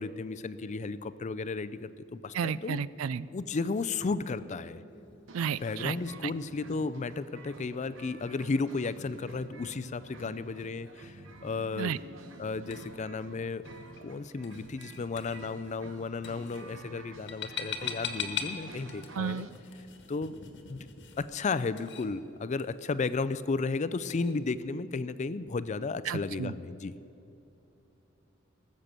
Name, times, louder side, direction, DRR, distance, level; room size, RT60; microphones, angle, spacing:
voice 1, 0.0-2.8 3.3-4.8 5.6-12.0 12.4-13.6 14.0-19.5 20.1-20.4 20.7-20.9 21.2-26.9, left 4 dB, 35° left, 14 dB, 0.4 m, -34 dB
voice 2, 2.3-3.3 5.3-6.0 6.2-6.3 11.8-12.0 19.1-19.5 26.1-26.5, right 7 dB, 85° right, 18 dB, 0.4 m, -32 dB
card on plate, 4.9-24.3, left 7 dB, 60° left, 1.3 m, -45 dB
sound 1, 5.3-19.5, right 2 dB, 65° right, 1.1 m, -50 dB
18.5 x 7.5 x 6.8 m, 3.0 s
head